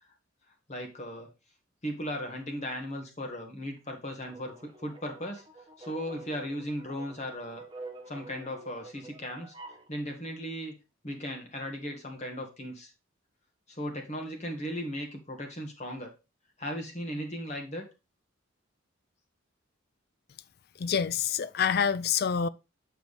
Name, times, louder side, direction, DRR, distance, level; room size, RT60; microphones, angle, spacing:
voice 1, 0.7-1.3 1.8-5.4 5.8-7.6 8.1-9.5 9.9-10.7 11.0-12.9 13.7-16.1 16.6-17.9, equal, 35° left, 1.7 m, -37 dB
sound 1, 4.2-9.9, right 3 dB, 25° right, 1.0 m, -48 dB
voice 2, 20.8-22.5, left 7 dB, 50° left, 0.4 m, -27 dB
7.1 x 4.6 x 4.0 m
head